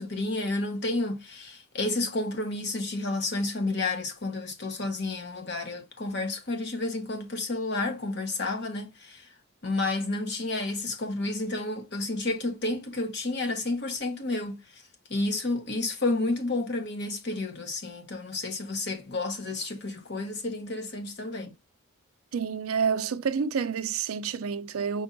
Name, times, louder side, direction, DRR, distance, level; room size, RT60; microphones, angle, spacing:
voice 1, 0.0-9.3 9.6-14.8 15.1-21.5, left 2 dB, 55° left, 1.1 m, -31 dB
voice 2, 22.3-25.0, right 6 dB, 80° right, 0.5 m, -28 dB
5.4 x 3.5 x 2.6 m
head